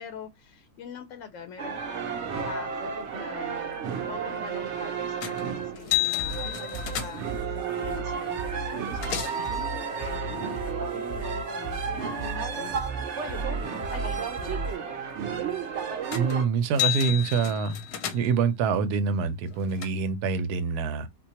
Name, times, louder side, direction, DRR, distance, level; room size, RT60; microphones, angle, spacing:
voice 1, 0.0-15.0, left 8 dB, 70° left, 0.8 m, -44 dB
sound 1, 1.6-16.5, right 6 dB, 60° right, 0.8 m, -33 dB
sound 2, 5.2-5.5 5.8-7.4 8.4-8.5 8.7-9.5 16.1-16.4 16.6-18.5 19.2-19.9, left 13 dB, 90° left, 1.3 m, -31 dB
sound 3, 5.9-14.7, right 3 dB, 5° right, 0.7 m, -37 dB
voice 2, 16.1-17.9 18.1-21.1, right 5 dB, 75° right, 1.1 m, -26 dB
4.2 x 2.2 x 2.8 m
omnidirectional pair, 1.7 m